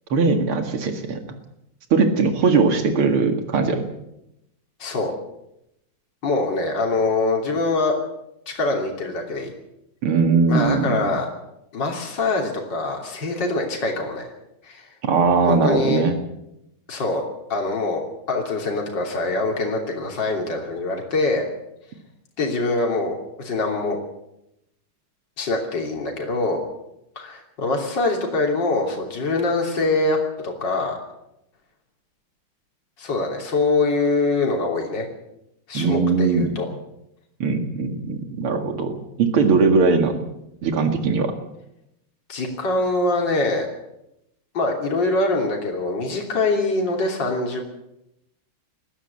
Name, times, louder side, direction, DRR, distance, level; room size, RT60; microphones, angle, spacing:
voice 1, 0.1-1.2 1.9-3.9 10.0-11.1 15.0-16.1 35.7-36.6 37.4-40.2 40.6-41.3, right 4 dB, 90° right, 6 dB, 2.8 m, -20 dB
voice 2, 4.8-5.1 6.2-8.0 8.5-9.5 10.5-11.3 11.7-14.3 14.6-14.9 15.5-16.0 16.9-17.2 17.5-18.0 18.3-21.4 22.4-24.0 25.4-26.6 27.2-30.2 30.4-31.0 33.0-35.1 35.7-36.7 42.3-43.7 44.5-47.6, left 3 dB, 55° left, 1 dB, 3.8 m, -24 dB
21.0 x 14.5 x 8.6 m, 0.85 s
omnidirectional pair, 2.3 m